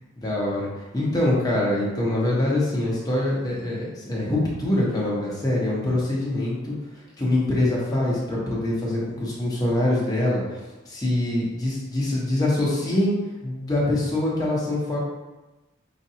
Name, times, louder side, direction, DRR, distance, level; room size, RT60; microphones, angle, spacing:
voice 1, 0.2-6.7 7.2-10.6 10.8-13.1 13.4-15.0, left 1 dB, 20° left, -6 dB, 1.0 m, -24 dB
5.1 x 2.4 x 2.8 m, 1.1 s
head